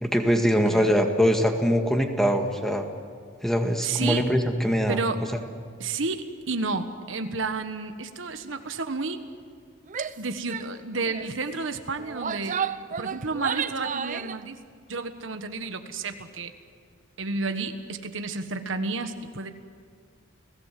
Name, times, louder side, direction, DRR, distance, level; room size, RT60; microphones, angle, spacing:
voice 1, 0.0-2.9 3.4-5.0, equal, ahead, 4 dB, 1.8 m, -22 dB
voice 2, 0.6-0.9 3.8-4.3 4.9-5.2 5.8-9.2 10.2-14.6 14.9-16.5 17.2-19.5, right 3 dB, 75° right, 8 dB, 1.4 m, -31 dB
Female speech woman speaking / Yell, 9.9-10.2 10.5-10.7 11.0-11.3 12.0-14.4, right 7 dB, 40° right, 0.6 m, -32 dB
30.0 x 18.0 x 7.6 m, 2.1 s
head